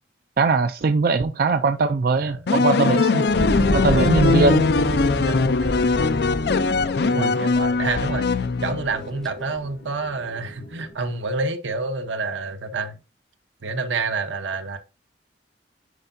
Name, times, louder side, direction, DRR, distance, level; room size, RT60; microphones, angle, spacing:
voice 1, 0.4-3.3 3.7-4.6 7.1-7.3, right 4 dB, 50° right, 0.4 m, -20 dB
sound 1, 2.5-9.1, left 4 dB, 60° left, 0.4 m, -21 dB
sound 2, 3.3-6.8 7.5-8.3 8.6-9.6, equal, 5° left, 0.6 m, -32 dB
sound 3, 3.4-10.9, equal, 80° left, 2.9 m, -31 dB
voice 2, 5.1-5.8 6.7-8.3 8.6-13.0 13.6-14.8, right 3 dB, 85° right, 0.9 m, -28 dB
9.7 x 4.5 x 2.6 m
head